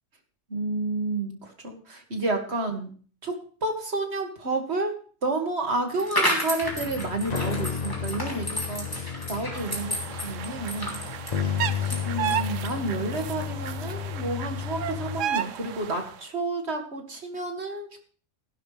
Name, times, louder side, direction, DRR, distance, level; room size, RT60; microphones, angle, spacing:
voice 1, 0.5-2.9 3.2-3.3 3.6-11.0 11.8-18.0, right 2 dB, 60° right, 4 dB, 2.6 m, -30 dB
sound 1, 5.9-12.9, equal, 15° left, 3.5 m, -32 dB
sound 2, 6.6-15.2, left 8 dB, 40° left, 0.7 m, -33 dB
sound 3, 9.5-16.1, right 10 dB, 85° right, 1.1 m, -33 dB
15.0 x 12.0 x 3.4 m, 0.41 s
omnidirectional pair, 1.3 m